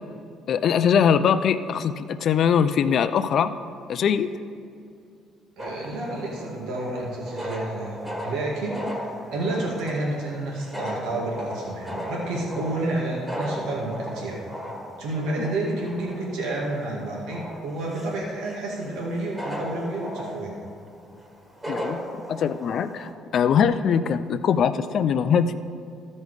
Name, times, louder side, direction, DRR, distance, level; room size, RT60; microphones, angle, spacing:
voice 1, 0.5-3.5 3.9-4.3 15.4-15.5 21.7-22.0 22.3-25.5, left 7 dB, 60° left, 11 dB, 0.4 m, -22 dB
sound 1, 5.6-23.1, equal, 15° right, 1.7 m, -36 dB
voice 2, 5.6-14.4 15.0-20.5, right 2 dB, 85° right, -3 dB, 1.9 m, -30 dB
13.5 x 5.3 x 4.8 m, 2.4 s
cardioid pair, 85°, 0 cm